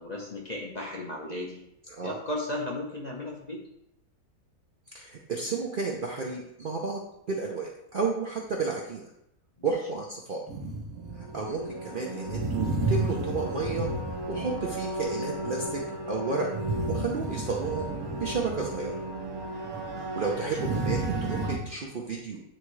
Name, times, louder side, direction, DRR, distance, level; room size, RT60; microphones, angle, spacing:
voice 1, 0.0-1.6 2.0-3.6 11.9-12.2, left 1 dB, 35° left, -2 dB, 0.7 m, -35 dB
voice 2, 4.9-7.0 7.3-9.0 9.6-10.4 11.2-13.9 14.3-15.8 16.1-16.5 16.9-17.9 18.2-19.0 20.0-22.4, right 4 dB, 50° right, -1 dB, 0.6 m, -32 dB
sound 1, 10.5-21.6, right 2 dB, 75° right, 1.3 m, -32 dB
8.7 x 3.6 x 3.1 m, 0.78 s
omnidirectional pair, 1.6 m